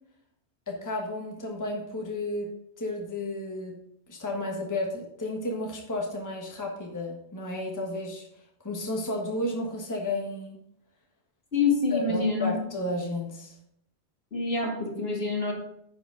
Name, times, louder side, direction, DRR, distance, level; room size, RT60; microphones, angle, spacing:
voice 1, 0.7-3.8 4.1-8.3 8.6-10.6 11.9-13.6, left 1 dB, 15° left, 0 dB, 1.3 m, -32 dB
voice 2, 11.5-12.5 14.3-15.5, left 4 dB, 65° left, -1 dB, 2.4 m, -26 dB
10.0 x 6.1 x 3.8 m, 0.72 s
omnidirectional pair, 1.1 m